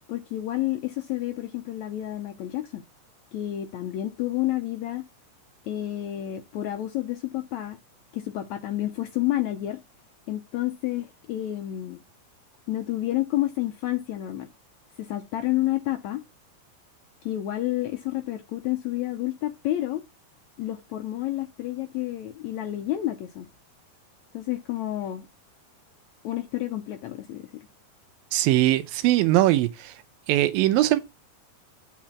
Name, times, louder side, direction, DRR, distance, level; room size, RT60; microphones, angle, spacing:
voice 1, 0.1-2.8 3.3-5.0 5.7-7.8 8.1-9.8 10.3-12.0 12.7-14.5 15.0-16.2 17.2-20.0 20.6-23.5 24.3-25.3 26.2-27.5, left 14 dB, 80° left, 1.6 m, -29 dB
voice 2, 28.3-29.9 30.3-31.0, right 15 dB, 90° right, 2.5 m, -21 dB
7.5 x 5.0 x 5.8 m
omnidirectional pair, 4.1 m